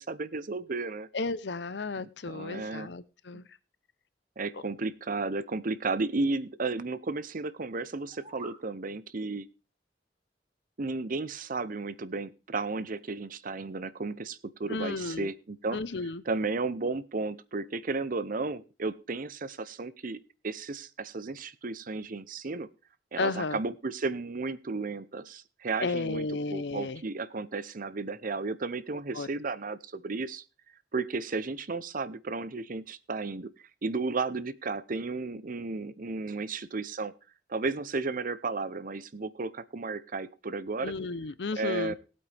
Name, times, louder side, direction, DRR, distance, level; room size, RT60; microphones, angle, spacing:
voice 1, 0.0-1.1 2.3-2.9 4.4-9.5 10.8-15.8 16.3-22.7 23.1-30.4 30.9-33.5 33.8-37.1 37.5-40.9 41.6-41.9, right 3 dB, 50° right, 16 dB, 0.7 m, -33 dB
voice 2, 1.1-3.5 4.5-4.6 14.7-15.3 15.7-16.2 23.2-23.6 25.8-27.0 29.1-29.3 40.8-41.9, left 3 dB, 70° left, 16 dB, 0.7 m, -33 dB
sound 1, 7.9-8.7, right 4 dB, 35° right, 1.7 m, -47 dB
18.5 x 8.6 x 3.4 m, 0.33 s
head